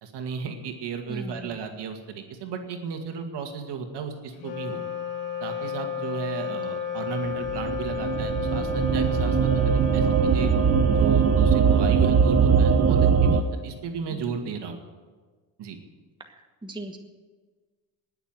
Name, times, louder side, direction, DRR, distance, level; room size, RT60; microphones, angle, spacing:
voice 1, 0.0-4.8 5.4-10.5 10.9-14.8 15.6-15.8, right 6 dB, 60° right, 5 dB, 2.2 m, -34 dB
voice 2, 1.1-1.6 11.6-11.9 14.1-14.2 16.2-17.0, right 1 dB, 10° right, 4 dB, 1.4 m, -39 dB
Wind instrument woodwind instrument, 4.3-13.9, left 8 dB, 85° left, 1.7 m, -33 dB
sound 1, 7.5-13.4, right 7 dB, 30° right, 1.0 m, -21 dB
19.0 x 7.0 x 8.0 m, 1.4 s
supercardioid pair, 70°, 47 cm